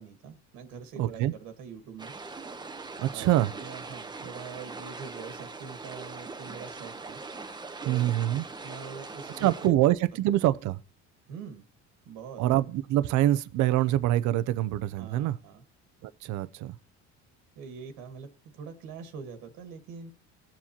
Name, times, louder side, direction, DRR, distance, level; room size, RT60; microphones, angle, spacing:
voice 1, 0.0-2.1 3.1-3.3 3.5-7.2 7.8-8.0 8.6-9.7 11.3-11.6 12.0-12.4 15.0-15.6 17.5-18.3 18.5-20.1, right 6 dB, 85° right, 1.7 m, -43 dB
voice 2, 1.0-1.3 3.0-3.5 7.9-8.5 9.4-10.8 12.4-15.4 16.0-16.8, right 14 dB, 65° right, 0.7 m, -25 dB
sound 1, 2.0-9.7, right 3 dB, 15° right, 0.8 m, -41 dB
19.5 x 7.3 x 2.9 m
cardioid pair, 115°, 31 cm